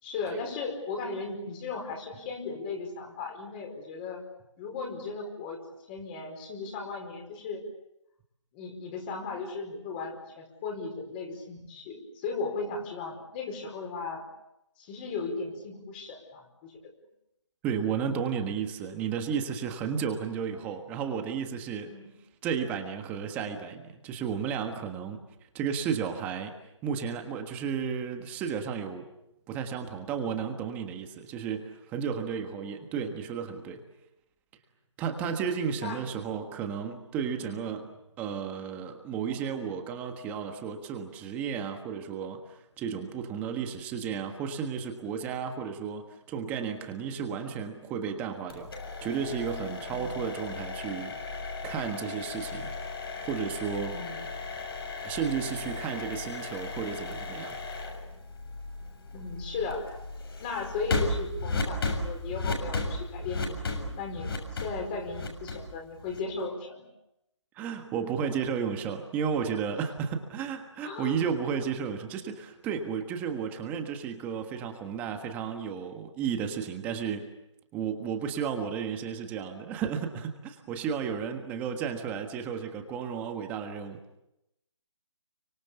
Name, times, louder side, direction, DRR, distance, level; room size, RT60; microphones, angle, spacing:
voice 1, 0.0-4.2 4.6-5.6 5.9-7.6 8.5-14.2 14.8-16.8 21.9-22.1 24.9-25.2 35.8-36.0 37.4-37.5 49.9-50.3 53.9-54.5 59.1-60.0 60.4-64.3 64.6-66.9 70.8-71.2, left 4 dB, 20° left, 3 dB, 4.8 m, -36 dB
voice 2, 17.6-21.9 22.4-25.2 25.5-26.5 26.8-29.0 29.5-33.9 35.0-37.9 38.2-48.7 49.0-52.7 53.2-54.0 55.0-57.6 67.5-77.3 77.7-84.0, right 7 dB, 10° right, 5 dB, 1.4 m, -33 dB
sound 1, 48.5-66.4, left 3 dB, 50° left, 6.8 m, -35 dB
30.0 x 25.0 x 7.0 m, 0.86 s
figure-of-eight pair, 165°, 16 cm